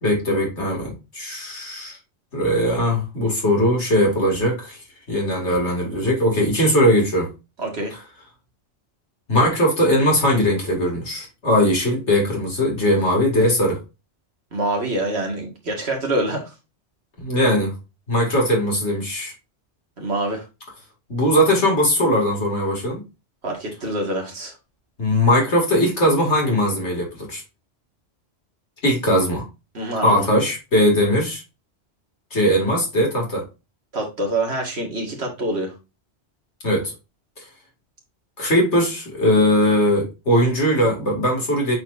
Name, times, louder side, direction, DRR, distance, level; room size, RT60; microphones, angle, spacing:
voice 1, 0.0-2.0 2.3-4.8 5.1-7.3 9.3-13.8 17.2-17.7 18.1-19.3 21.1-23.0 25.0-27.4 28.8-29.4 30.0-31.4 32.3-33.4 36.6-36.9 38.4-41.8, equal, 80° left, 2.9 m, -19 dB
voice 2, 7.6-7.9 14.5-16.5 20.0-20.4 23.4-24.5 29.7-30.3 33.9-35.7, right 1 dB, 65° right, 2.3 m, -25 dB
8.1 x 4.5 x 2.7 m
omnidirectional pair, 1.2 m